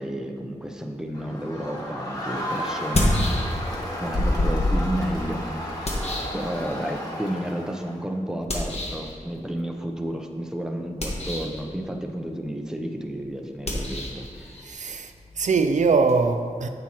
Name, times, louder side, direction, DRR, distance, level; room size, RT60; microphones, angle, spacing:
voice 1, 0.0-3.2 4.0-14.6, right 1 dB, 5° right, 0.8 m, -32 dB
Crowd, 1.1-8.0, equal, 30° left, 1.6 m, -33 dB
sound 1, 1.8-1.9 2.7-3.8 4.1-7.0 8.5-9.1 10.9-11.6 13.6-16.2, left 1 dB, 55° left, 1.4 m, -28 dB
voice 2, 14.6-16.7, right 4 dB, 75° right, 0.4 m, -22 dB
8.9 x 7.3 x 3.0 m
cardioid pair, 55°, 13 cm